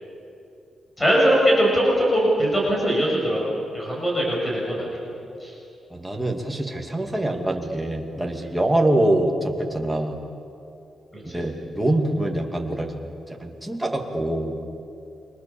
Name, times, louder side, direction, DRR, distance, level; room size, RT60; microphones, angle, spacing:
voice 1, 1.0-3.4 3.7-5.1 5.4-5.5 11.1-11.4, equal, 15° left, -3 dB, 6.9 m, -21 dB
voice 2, 5.9-10.2 11.3-12.9 13.3-14.5, right 1 dB, 5° right, 1 dB, 2.5 m, -24 dB
29.5 x 25.0 x 7.3 m, 2.7 s
wide cardioid pair, 155°, 0 cm